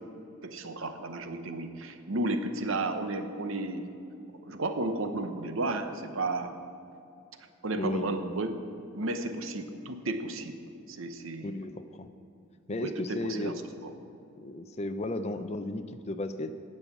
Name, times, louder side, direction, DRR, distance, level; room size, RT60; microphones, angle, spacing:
voice 1, 0.4-3.9 4.4-6.5 7.6-8.6 8.9-10.6 10.9-11.6 12.8-13.5 13.8-13.9, right 2 dB, 65° right, 8 dB, 0.8 m, -33 dB
voice 2, 7.7-8.1 11.4-12.1 12.7-13.6 14.4-16.5, left 2 dB, 30° left, 10 dB, 0.5 m, -34 dB
11.5 x 5.6 x 8.2 m, 2.7 s
head